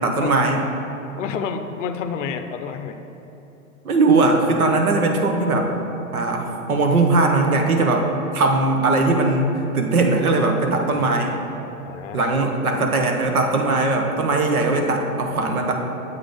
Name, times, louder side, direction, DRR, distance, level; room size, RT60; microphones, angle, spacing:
voice 1, 0.0-0.6 3.8-5.7 6.1-8.1 8.3-11.4 12.1-15.7, right 3 dB, 85° right, 3 dB, 0.9 m, -19 dB
voice 2, 1.2-3.0 10.9-11.3 11.8-12.4, left 6 dB, 60° left, 8 dB, 0.5 m, -30 dB
7.9 x 3.7 x 3.4 m, 3.0 s
hypercardioid pair, 115°, 42 cm